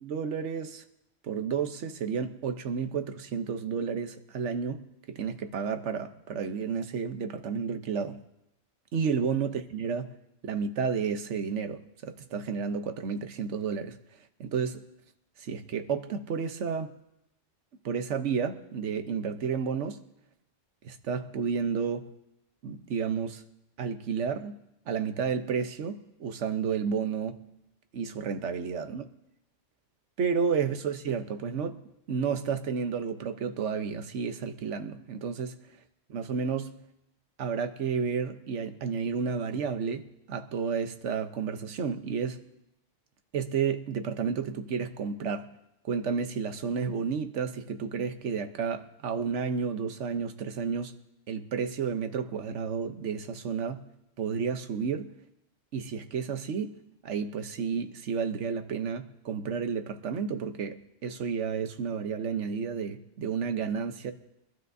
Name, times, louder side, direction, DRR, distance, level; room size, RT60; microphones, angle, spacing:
voice 1, 0.0-0.8 1.2-8.2 8.9-10.1 10.4-14.0 14.4-14.8 15.4-16.9 17.8-20.0 20.8-22.1 22.6-23.4 23.8-24.6 24.9-27.5 27.9-29.1 30.2-31.8 32.1-35.6 36.1-36.8 37.4-42.5 43.3-45.5 45.8-50.9 51.3-53.9 54.2-55.1 55.7-64.1, right 6 dB, 80° right, 1.2 m, -31 dB
23.5 x 12.5 x 2.7 m
omnidirectional pair, 1.2 m